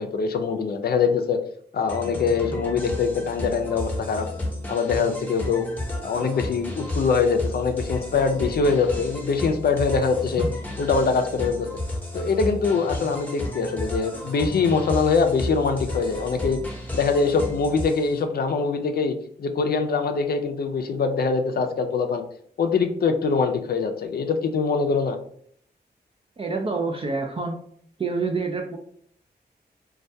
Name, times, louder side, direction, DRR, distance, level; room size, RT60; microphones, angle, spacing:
voice 1, 0.0-1.4 1.7-4.3 4.7-5.6 6.0-10.4 10.8-11.7 12.1-16.6 16.9-22.2 22.6-25.2, left 5 dB, 65° left, 6 dB, 0.4 m, -23 dB
sound 1, 1.9-18.2, left 1 dB, 10° left, 0.7 m, -32 dB
voice 2, 26.4-27.6 28.0-28.8, right 4 dB, 35° right, 2 dB, 0.4 m, -27 dB
2.2 x 2.2 x 2.6 m, 0.63 s
cardioid pair, 60°, 17 cm